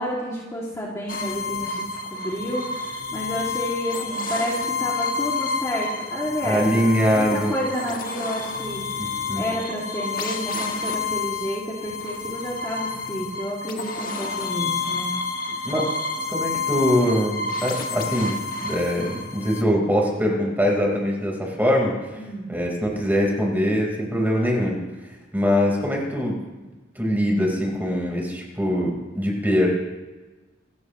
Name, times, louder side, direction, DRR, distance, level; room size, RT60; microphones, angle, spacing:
voice 1, 0.0-6.7 7.1-15.1 15.5-15.6 22.1-22.5, equal, 15° left, -5 dB, 2.5 m, -30 dB
sound 1, 1.1-19.6, left 4 dB, 50° left, 1.3 m, -29 dB
voice 2, 6.4-7.5 9.0-9.4 15.6-15.9 16.3-18.4 18.6-22.2 22.5-24.8 25.3-26.4 27.0-29.7, equal, 10° right, -1 dB, 4.3 m, -22 dB
27.5 x 15.0 x 3.1 m, 1.2 s
head